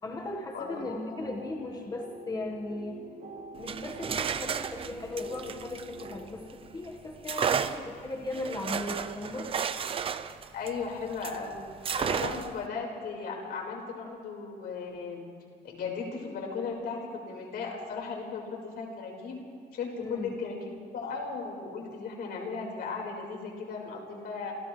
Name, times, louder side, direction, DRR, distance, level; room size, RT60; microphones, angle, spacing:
voice 1, 0.0-3.0 3.6-9.5 20.0-20.3, left 2 dB, 25° left, 0 dB, 1.6 m, -37 dB
voice 2, 0.5-1.2 10.5-11.6 12.0-15.2 15.6-19.4 19.7-20.6 20.9-24.5, left 5 dB, 85° left, 0 dB, 5.0 m, -36 dB
sound 1, 0.7-6.2, right 2 dB, 80° right, 7.6 m, -46 dB
sound 2, 3.6-6.6 7.2-11.4 11.8-12.6, right 7 dB, 35° right, 0.7 m, -33 dB
28.0 x 28.0 x 3.4 m, 2.2 s
cardioid pair, 170°, 16 cm